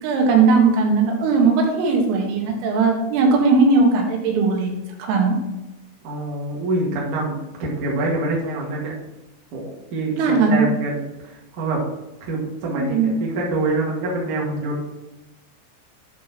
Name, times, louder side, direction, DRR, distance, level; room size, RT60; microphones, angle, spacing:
voice 1, 0.0-4.7 5.0-5.4 10.2-10.7 12.6-13.1, right 4 dB, 85° right, 1 dB, 4.1 m, -18 dB
voice 2, 6.0-8.9 9.5-11.8 12.2-14.8, right 2 dB, 50° right, -3 dB, 2.7 m, -26 dB
9.3 x 5.9 x 4.3 m, 1.0 s
omnidirectional pair, 5.7 m